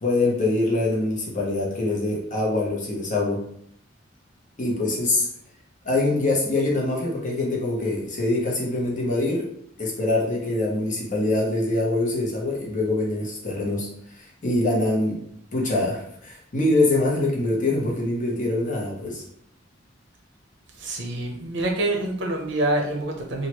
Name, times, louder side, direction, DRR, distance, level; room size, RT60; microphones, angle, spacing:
voice 1, 0.0-3.5 4.6-5.3 5.8-9.5 9.8-15.2 15.5-19.2, left 2 dB, 40° left, -2 dB, 0.7 m, -24 dB
voice 2, 20.8-23.5, right 1 dB, 65° right, 1 dB, 0.7 m, -26 dB
3.0 x 2.4 x 2.9 m, 0.68 s
head